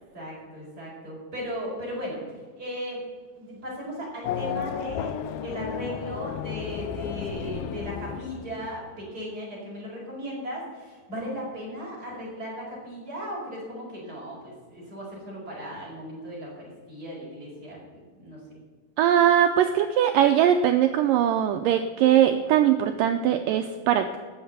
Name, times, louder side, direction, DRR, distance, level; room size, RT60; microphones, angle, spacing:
voice 1, 0.1-2.2 2.6-3.0 3.4-5.1 5.4-18.4, equal, 25° right, -5 dB, 5.1 m, -36 dB
Race car auto racing / Accelerating revving vroom, 4.2-8.9, left 9 dB, 80° left, 2.3 m, -33 dB
voice 2, 19.0-24.2, right 10 dB, 80° right, 7 dB, 1.9 m, -21 dB
14.5 x 6.5 x 8.0 m, 1.5 s
omnidirectional pair, 4.5 m